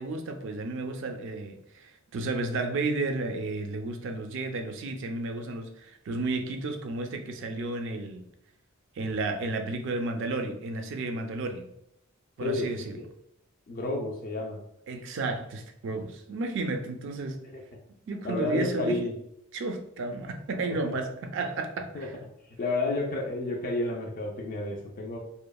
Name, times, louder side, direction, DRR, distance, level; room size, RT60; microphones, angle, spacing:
voice 1, 0.0-8.2 9.0-11.7 12.4-13.0 14.9-17.4 18.1-19.1 19.5-22.1, right 2 dB, 55° right, 5 dB, 0.3 m, -32 dB
voice 2, 12.4-13.1 13.7-14.6 18.2-19.1 20.7-21.0 21.9-22.1 22.6-25.2, left 2 dB, 40° left, -1 dB, 0.3 m, -31 dB
2.9 x 2.0 x 2.3 m, 0.77 s
head